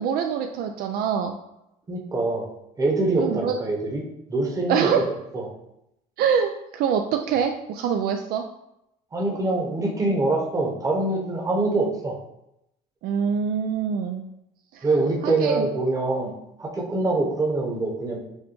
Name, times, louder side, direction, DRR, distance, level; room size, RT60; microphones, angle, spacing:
voice 1, 0.0-1.3 3.2-3.6 4.7-5.0 6.2-8.5 13.0-14.2 14.7-14.9 15.2-15.7, right 7 dB, 65° right, 5 dB, 0.4 m, -24 dB
voice 2, 1.9-2.5 2.8-4.0 4.3-5.5 9.1-12.1 14.8-16.3 16.6-18.2, right 2 dB, 20° right, 0 dB, 1.0 m, -24 dB
6.4 x 2.2 x 3.1 m, 0.82 s
cardioid pair, 115°, 17 cm